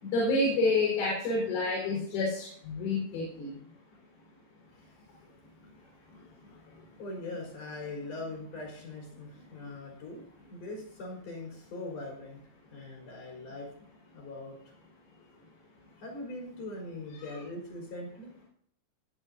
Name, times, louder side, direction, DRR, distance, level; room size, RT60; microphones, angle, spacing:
voice 1, 0.0-3.6 6.2-6.9 9.5-9.7 17.2-17.3, left 2 dB, 85° left, -5 dB, 6.9 m, -30 dB
voice 2, 7.0-12.4 12.7-13.7 14.1-14.6 16.0-18.3, left 2 dB, 50° left, -2 dB, 5.3 m, -41 dB
22.0 x 8.5 x 2.7 m, 0.62 s
omnidirectional pair, 5.7 m